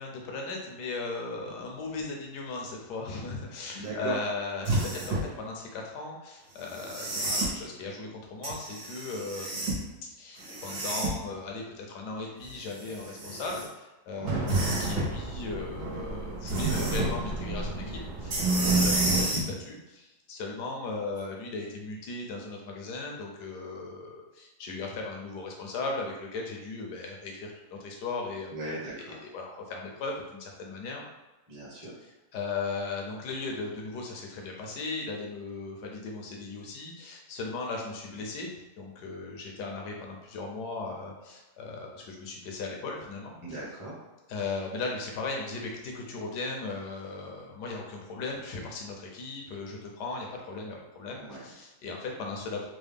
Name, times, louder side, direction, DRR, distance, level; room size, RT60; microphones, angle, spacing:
voice 1, 0.0-28.5 29.0-31.0 32.3-38.5 38.8-43.4 44.3-52.7, left 3 dB, 80° left, 0 dB, 1.3 m, -37 dB
voice 2, 3.7-4.2 14.2-14.5 18.6-19.0 28.5-29.2 31.5-31.9 43.4-43.9 51.2-51.4, right 2 dB, 15° right, -7 dB, 0.8 m, -38 dB
sound 1, 4.6-5.3 6.7-7.5 8.4-9.8 10.4-11.3 12.4-13.6 14.5-15.1 16.5-17.1 18.3-19.5 21.2-21.3, right 1 dB, 65° right, 1.6 m, -31 dB
sound 2, 14.2-19.2, right 3 dB, 80° right, 1.3 m, -30 dB
3.8 x 2.2 x 3.4 m, 1.1 s
omnidirectional pair, 1.8 m